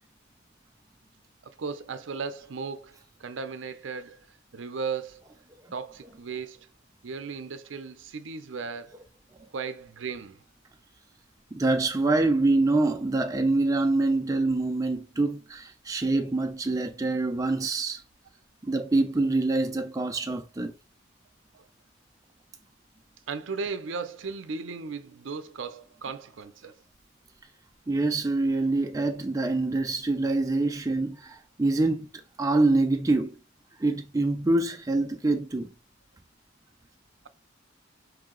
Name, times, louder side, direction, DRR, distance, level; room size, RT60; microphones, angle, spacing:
voice 1, 1.4-4.2 4.5-5.2 5.7-6.7 7.0-9.0 9.5-10.4 21.5-21.6 23.3-26.7, right 5 dB, 75° right, 0.5 m, -36 dB
voice 2, 11.5-18.0 18.6-20.7 27.9-32.1 32.4-33.3 33.8-35.7, right 2 dB, 15° right, 0.4 m, -25 dB
4.8 x 2.7 x 3.7 m
head